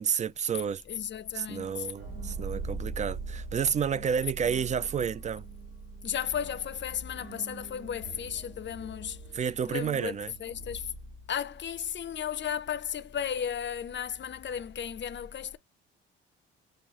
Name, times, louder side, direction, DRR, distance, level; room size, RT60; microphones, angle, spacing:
voice 1, 0.0-0.8 1.3-5.4 9.3-10.3, right 7 dB, 25° right, 0.3 m, -30 dB
voice 2, 0.9-1.9 3.9-4.1 6.0-9.4 9.7-10.9 11.3-15.6, left 8 dB, 35° left, 0.6 m, -35 dB
sound 1, 2.0-11.6, right 3 dB, 85° right, 1.4 m, -42 dB
6.8 x 2.5 x 3.0 m
figure-of-eight pair, 45°, 32 cm